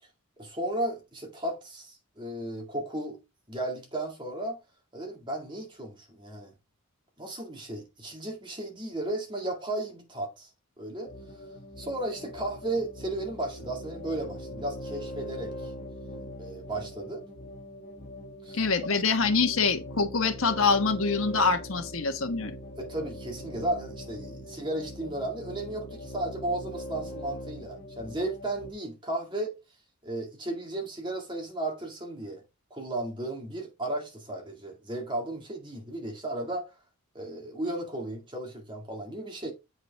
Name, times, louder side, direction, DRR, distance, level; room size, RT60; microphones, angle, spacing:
voice 1, 0.4-3.2 3.5-4.6 4.9-6.5 7.2-10.5 10.8-11.1 11.8-15.7 16.4-17.2 18.4-18.7 22.8-29.6 30.0-32.4 32.7-36.7 37.1-39.5, right 1 dB, 20° right, 2.1 m, -34 dB
sound 1, 11.1-28.7, left 1 dB, 35° left, 1.5 m, -41 dB
voice 2, 18.5-22.5, left 4 dB, 65° left, 1.3 m, -25 dB
8.0 x 5.1 x 3.4 m
head